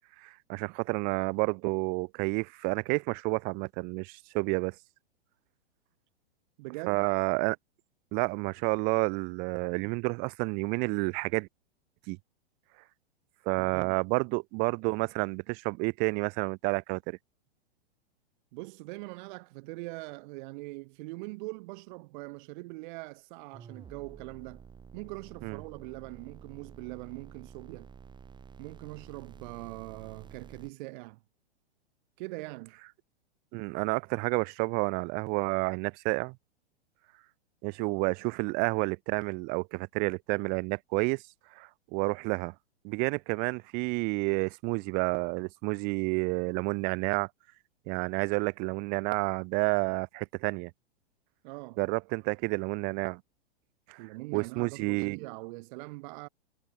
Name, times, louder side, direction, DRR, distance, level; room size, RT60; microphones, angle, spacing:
voice 1, 0.2-4.8 6.9-7.6 8.1-11.5 12.1-12.2 13.5-17.2 25.4-25.6 33.5-36.4 37.6-41.2 41.6-42.5 42.8-47.3 47.9-50.7 51.8-53.2 53.9-54.0 54.3-55.2, right 32 dB, 30° right, 0.5 m, -30 dB
voice 2, 6.6-7.1 13.5-14.0 18.5-24.6 24.9-27.9 28.6-31.2 32.2-32.7 51.4-51.8 54.0-56.3, right 25 dB, 50° right, 6.4 m, -42 dB
sound 1, 23.5-30.7, right 6 dB, 15° right, 1.6 m, -50 dB
hypercardioid pair, 125°, 32 cm